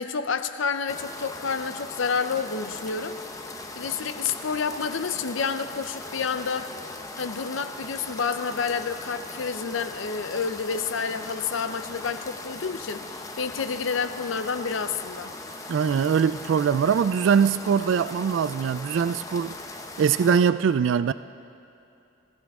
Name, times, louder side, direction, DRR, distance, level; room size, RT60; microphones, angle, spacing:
voice 1, 0.0-3.1 3.7-6.7 7.2-15.3, left 5 dB, 75° left, 11 dB, 0.6 m, -29 dB
sound 1, 0.9-20.4, left 2 dB, 15° left, 0.8 m, -39 dB
voice 2, 15.7-19.6 20.0-21.1, right 7 dB, 65° right, 14 dB, 0.3 m, -22 dB
22.0 x 14.5 x 3.6 m, 2.7 s
head